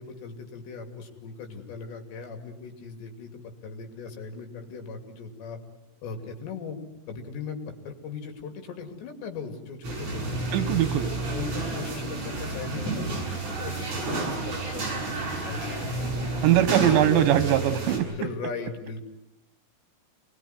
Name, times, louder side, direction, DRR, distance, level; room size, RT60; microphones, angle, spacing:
voice 1, 0.0-5.6 6.0-6.8 7.1-7.6 7.8-10.5 11.3-16.2 16.9-17.6 17.9-19.0, left 5 dB, 75° left, 5 dB, 4.9 m, -39 dB
sound 1, 9.8-18.0, right 2 dB, 40° right, 8.4 m, -31 dB
voice 2, 10.5-11.1 16.4-18.1, right 11 dB, 85° right, 11 dB, 3.6 m, -21 dB
28.5 x 21.0 x 9.6 m, 0.92 s
omnidirectional pair, 5.0 m